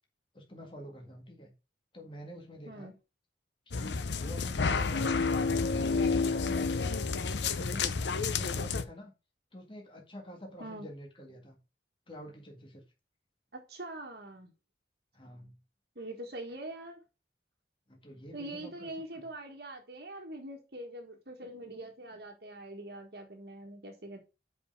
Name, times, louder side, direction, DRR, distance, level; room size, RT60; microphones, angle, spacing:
voice 1, 0.3-1.5 1.9-2.9 3.7-6.9 7.2-9.1 9.5-11.6 12.1-12.8 15.1-15.5 17.9-18.9 19.2-19.3, equal, 30° left, 1.8 m, -47 dB
sound 1, 3.7-8.8, left 4 dB, 75° left, 0.7 m, -30 dB
voice 2, 13.5-14.5 15.9-17.0 18.3-24.2, right 1 dB, 60° right, 1.6 m, -43 dB
5.4 x 5.0 x 6.5 m
head